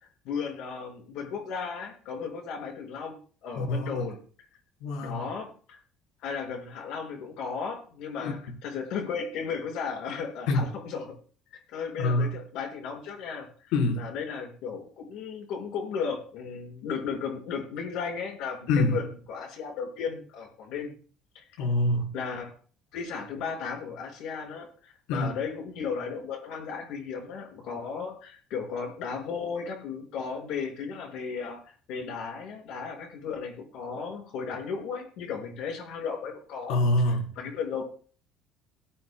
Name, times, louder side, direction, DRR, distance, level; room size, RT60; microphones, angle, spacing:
voice 1, 0.2-3.2 3.4-4.2 5.0-5.8 6.2-11.2 11.7-20.9 21.4-21.5 22.1-22.5 22.9-31.6 31.9-36.8 37.4-37.8, left 6 dB, 60° left, 5.3 m, -35 dB
voice 2, 3.5-4.1 4.8-5.3 8.2-8.3 10.5-10.7 12.0-12.4 13.7-14.1 18.7-19.0 21.6-22.1 25.1-25.3 36.7-37.3, left 2 dB, 85° left, 3.7 m, -25 dB
18.0 x 13.5 x 2.2 m
cardioid pair, 175°, 0 cm